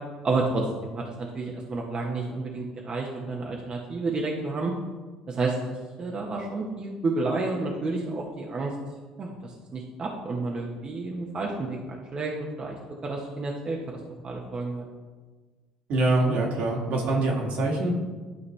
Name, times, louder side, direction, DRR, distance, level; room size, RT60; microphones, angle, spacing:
voice 1, 0.2-0.6 0.9-4.7 5.3-5.5 6.0-8.7 9.2-12.8 13.0-13.8 14.2-14.8, right 3 dB, 40° right, -1 dB, 1.1 m, -30 dB
voice 2, 15.9-17.9, right 2 dB, 65° right, -1 dB, 1.9 m, -24 dB
11.5 x 4.1 x 3.3 m, 1.4 s
hypercardioid pair, 70°, 2 cm